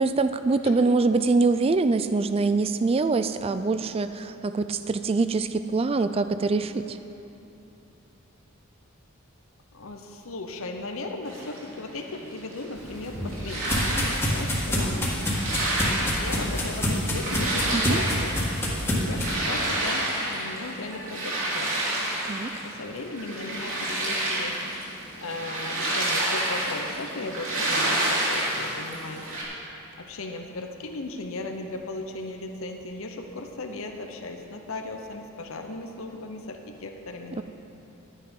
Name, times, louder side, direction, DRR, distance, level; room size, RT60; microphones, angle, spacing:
voice 1, 0.0-7.0 17.7-18.0 22.2-22.5 37.4-37.5, right 3 dB, 25° right, 11 dB, 0.3 m, -24 dB
voice 2, 9.7-15.1 15.9-18.3 19.0-21.8 22.6-24.5 25.2-29.3 30.0-37.4, left 2 dB, 65° left, 4 dB, 0.9 m, -37 dB
sound 1, 11.3-29.4, right 1 dB, 60° right, 3.0 m, -30 dB
sound 2, 12.8-19.3, left 1 dB, 10° left, 1.7 m, -27 dB
12.0 x 9.8 x 5.3 m, 2.9 s
head